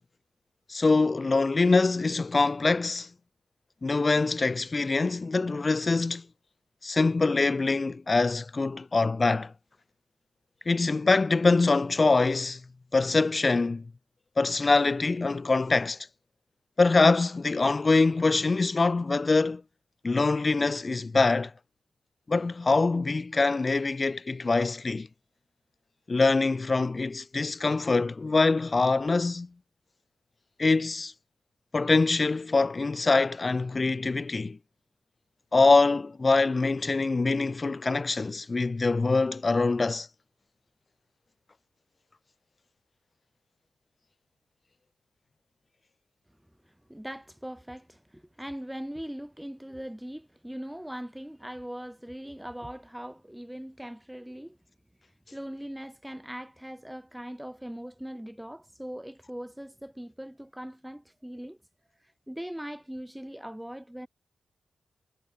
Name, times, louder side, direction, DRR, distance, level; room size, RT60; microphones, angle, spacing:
voice 1, 0.7-3.1 3.8-6.2 6.8-9.5 10.7-12.6 12.9-13.9 14.4-16.0 16.8-19.6 20.0-21.5 22.3-25.1 26.1-29.5 30.6-31.1 31.7-34.6 35.5-40.1, left 3 dB, 30° left, 0.4 m, -24 dB
voice 2, 46.6-54.6 55.3-61.6 62.0-64.1, equal, 5° right, 4.5 m, -40 dB
wide cardioid pair, 115°, 0 cm